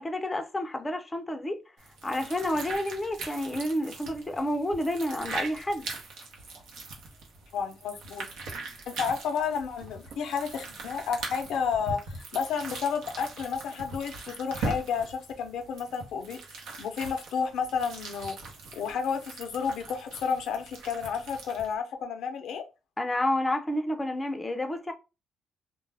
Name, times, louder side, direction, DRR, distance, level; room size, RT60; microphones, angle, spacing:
voice 1, 0.0-1.6 2.0-5.9 23.0-24.9, left 1 dB, 15° left, 0.4 m, -30 dB
sound 1, 1.8-21.7, right 3 dB, 85° right, 0.8 m, -41 dB
voice 2, 7.5-8.3 8.9-18.4 18.7-22.6, left 6 dB, 75° left, 0.5 m, -31 dB
2.3 x 2.0 x 3.3 m
cardioid pair, 90°, 0 cm